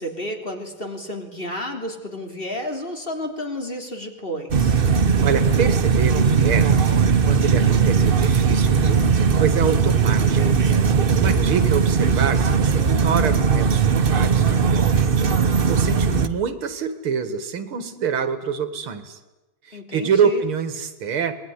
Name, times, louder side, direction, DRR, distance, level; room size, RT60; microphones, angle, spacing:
voice 1, 0.0-4.8 19.7-20.4, left 1 dB, 25° left, 3 dB, 3.3 m, -31 dB
sound 1, 4.5-16.3, right 6 dB, 35° right, 0.9 m, -18 dB
voice 2, 5.2-9.0 9.4-10.6 10.9-15.3 15.7-19.2 19.7-21.3, right 6 dB, 85° right, 11 dB, 2.7 m, -26 dB
26.0 x 20.0 x 9.9 m, 1.0 s
omnidirectional pair, 2.3 m